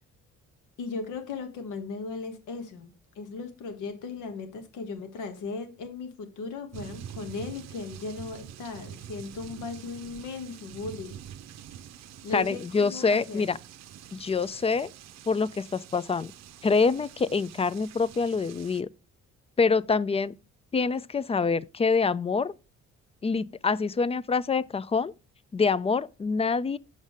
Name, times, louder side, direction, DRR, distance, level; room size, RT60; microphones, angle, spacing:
voice 1, 0.8-11.2 12.2-13.4, left 4 dB, 80° left, 1.5 m, -37 dB
sound 1, 6.7-18.8, right 10 dB, 60° right, 0.6 m, -46 dB
voice 2, 12.3-13.6 14.1-14.9 15.3-16.3 16.6-18.9 19.6-20.3 20.7-22.5 23.2-25.1 25.5-26.8, left 4 dB, 20° left, 0.3 m, -26 dB
6.4 x 5.5 x 4.9 m
cardioid pair, 90°, 30 cm